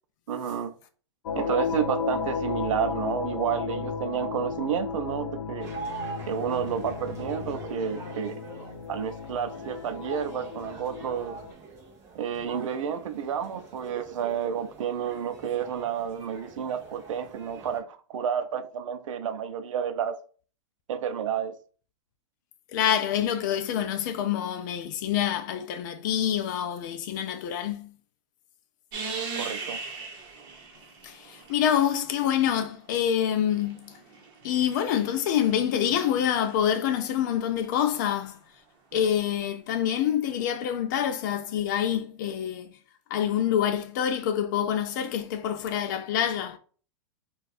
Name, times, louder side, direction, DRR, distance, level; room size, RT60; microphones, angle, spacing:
voice 1, 0.3-0.7 1.4-5.7 6.3-8.4 8.9-11.4 12.1-20.1 20.9-21.5 29.4-29.8, right 8 dB, 90° right, 0.5 m, -30 dB
sound 1, 1.3-11.5, left 6 dB, 80° left, 0.6 m, -34 dB
sound 2, 5.6-17.8, right 4 dB, 15° right, 0.6 m, -44 dB
voice 2, 22.7-27.9 31.0-33.9 34.4-38.4 38.9-42.8 43.1-46.6, left 9 dB, 40° left, 0.4 m, -26 dB
sound 3, 28.9-32.0 33.1-36.6 38.9-39.0, right 4 dB, 45° right, 0.9 m, -39 dB
2.5 x 2.3 x 4.0 m
supercardioid pair, 165°, 16 cm